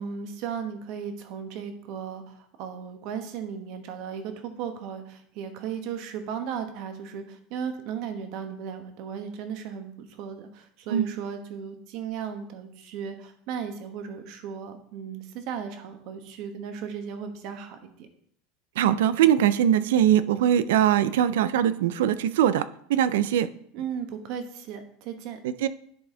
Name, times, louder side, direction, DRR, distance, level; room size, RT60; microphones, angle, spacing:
voice 1, 0.0-18.1 23.7-25.4, right 7 dB, 60° right, 7 dB, 1.1 m, -36 dB
voice 2, 18.8-23.5 25.4-25.7, right 10 dB, 85° right, 15 dB, 0.4 m, -22 dB
10.5 x 4.1 x 3.8 m, 0.66 s
supercardioid pair, 130°, 0 cm